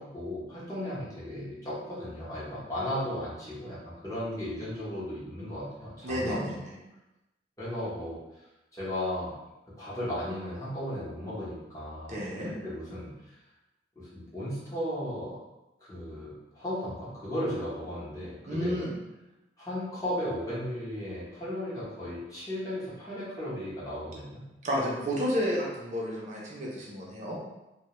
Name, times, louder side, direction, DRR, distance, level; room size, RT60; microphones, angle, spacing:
voice 1, 0.0-6.5 7.6-8.5 8.7-9.3 9.8-12.2 12.6-13.4 14.0-15.4 15.8-18.8 19.6-24.4, left 1 dB, 20° left, -9 dB, 0.8 m, -35 dB
voice 2, 6.0-6.6 12.1-12.5 18.5-18.9 24.6-27.4, equal, 40° right, -4 dB, 0.6 m, -31 dB
2.2 x 2.2 x 2.9 m, 0.97 s
head